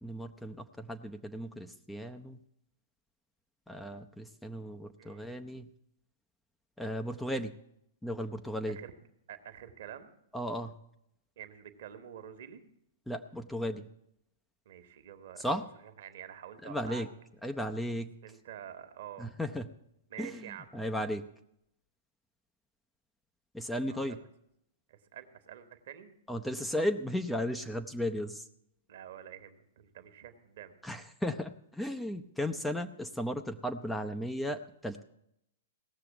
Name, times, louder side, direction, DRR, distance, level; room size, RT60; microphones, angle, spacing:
voice 1, 0.0-2.4 3.7-5.7 6.8-7.5 8.0-8.8 10.3-10.7 13.1-13.9 15.4-15.6 16.6-17.1 17.4-18.1 19.2-19.7 20.2-21.2 23.5-24.2 26.3-28.4 30.8-35.0, equal, 5° left, 7 dB, 0.6 m, -35 dB
voice 2, 9.3-10.1 11.4-12.6 14.6-15.7 16.0-17.1 18.2-19.3 20.1-20.7 23.9-24.2 24.9-26.1 28.9-30.7, right 10 dB, 60° right, 9 dB, 1.4 m, -47 dB
17.0 x 6.7 x 7.2 m, 0.76 s
figure-of-eight pair, 110°, 0 cm